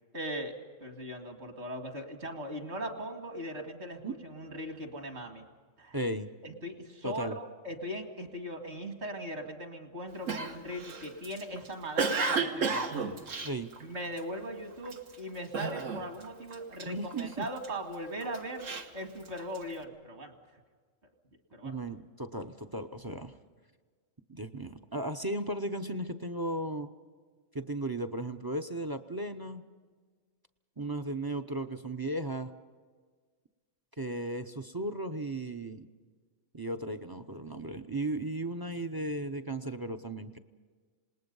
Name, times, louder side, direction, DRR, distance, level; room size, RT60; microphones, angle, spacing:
voice 1, 0.1-5.5 5.8-6.0 6.4-12.9 13.8-20.4 21.5-21.7, equal, 55° right, 4 dB, 2.4 m, -39 dB
voice 2, 5.9-6.3 7.0-7.4 13.4-13.7 16.9-17.5 21.6-23.4 24.3-26.9 27.5-29.6 30.8-32.5 34.0-35.9 36.5-40.4, right 1 dB, 25° right, 9 dB, 0.5 m, -35 dB
Cough, 10.3-14.4 14.8-15.1 15.5-16.3 16.5-17.7 18.2-19.7, right 4 dB, 75° right, 1.6 m, -32 dB
27.0 x 19.5 x 5.4 m, 1.5 s
omnidirectional pair, 1.3 m